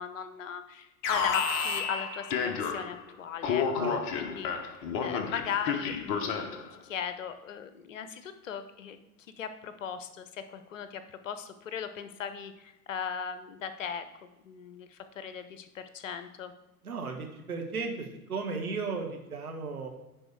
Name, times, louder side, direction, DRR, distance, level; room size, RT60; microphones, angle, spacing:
voice 1, 0.0-4.7 5.0-9.0 9.4-16.5, left 7 dB, 55° left, 10 dB, 0.9 m, -38 dB
Alarm, 1.0-3.0 3.4-6.7, left 6 dB, 30° left, 0.9 m, -31 dB
voice 2, 3.5-3.9 16.8-19.9, right 4 dB, 70° right, 2 dB, 1.6 m, -35 dB
9.9 x 4.4 x 4.8 m, 0.98 s
figure-of-eight pair, 100°, 45 cm